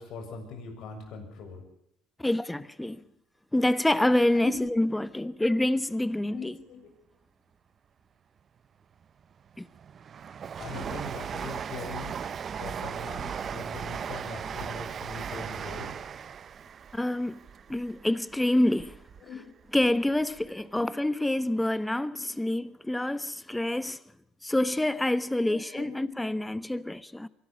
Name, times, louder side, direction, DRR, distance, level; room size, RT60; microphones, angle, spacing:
voice 1, 0.0-1.6 4.3-4.7 6.3-6.8 10.6-12.1 12.6-15.9 19.2-19.4 20.8-20.9 22.1-22.2 23.7-23.8 25.3-26.2, left 4 dB, 60° left, 7.2 m, -41 dB
voice 2, 2.2-3.0 3.5-6.6 9.6-9.7 16.9-17.4 17.7-19.0 19.7-24.0 24.4-27.3, left 1 dB, 5° left, 1.0 m, -27 dB
Train, 9.0-19.2 19.6-20.5 20.8-20.9, right 7 dB, 40° right, 0.8 m, -37 dB
24.0 x 13.0 x 8.5 m
supercardioid pair, 105°, 0 cm